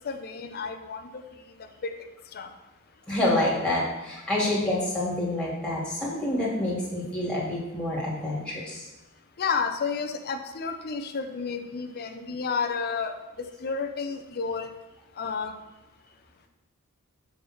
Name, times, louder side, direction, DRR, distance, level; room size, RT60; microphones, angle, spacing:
voice 1, 0.0-1.2 1.8-2.0 2.3-2.5 9.4-14.7 15.2-15.5, left 5 dB, 45° left, 6 dB, 0.5 m, -31 dB
voice 2, 3.1-8.9, left 1 dB, 5° left, -6 dB, 2.1 m, -27 dB
7.0 x 3.4 x 6.2 m, 1.0 s
head